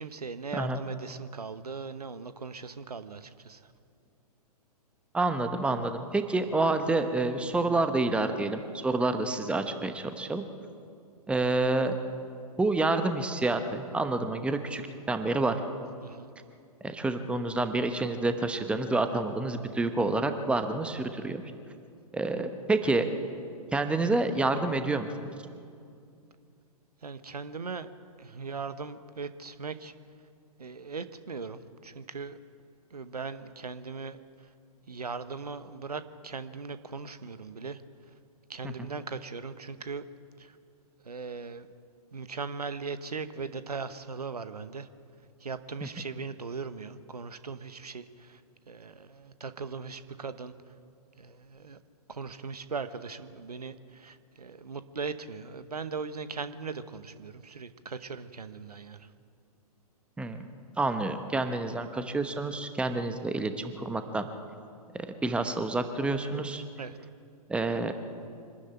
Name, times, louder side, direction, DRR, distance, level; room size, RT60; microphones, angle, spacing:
voice 1, 0.0-3.6 16.0-16.3 27.0-27.9 28.2-29.9 30.6-32.4 32.9-34.2 34.9-37.8 38.5-40.1 40.4-40.5 41.0-41.7 42.1-44.9 45.4-48.4 48.7-50.5 51.2-51.8 52.1-59.1 66.8-67.0, right 4 dB, 80° right, 12 dB, 1.1 m, -39 dB
voice 2, 5.1-10.4 11.3-11.9 12.6-14.8 15.1-15.6 16.8-21.4 22.1-23.1 23.7-25.3 38.6-38.7 45.8-45.9 60.2-60.4 60.8-64.3 64.9-66.6 67.5-67.9, right 2 dB, 5° right, 8 dB, 1.1 m, -28 dB
25.0 x 13.0 x 8.9 m, 2.4 s
figure-of-eight pair, 115°, 20 cm